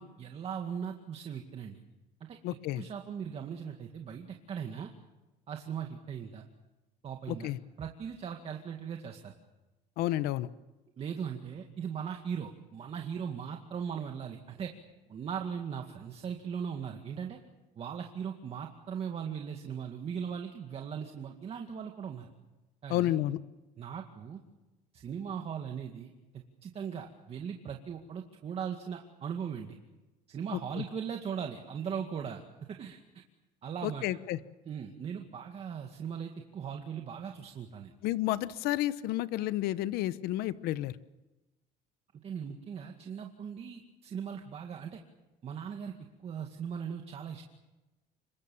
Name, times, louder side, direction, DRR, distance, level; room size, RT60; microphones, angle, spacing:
voice 1, 0.0-1.8 2.3-2.4 2.7-4.9 5.5-6.4 7.0-7.5 7.8-9.3 11.0-14.7 15.1-17.4 17.8-22.3 22.8-23.1 23.8-24.4 24.9-26.1 26.6-29.8 30.3-32.4 32.7-33.0 33.6-34.1 34.7-37.9 42.2-45.0 45.4-45.9 46.2-47.4, right 7 dB, 40° right, 3 dB, 2.1 m, -39 dB
voice 2, 2.4-2.8 7.3-7.6 10.0-10.5 22.9-23.4 30.5-30.8 33.8-34.4 38.0-40.9, left 14 dB, 75° left, 15 dB, 1.0 m, -31 dB
26.5 x 23.0 x 7.2 m, 1.1 s
cardioid pair, 125°, 16 cm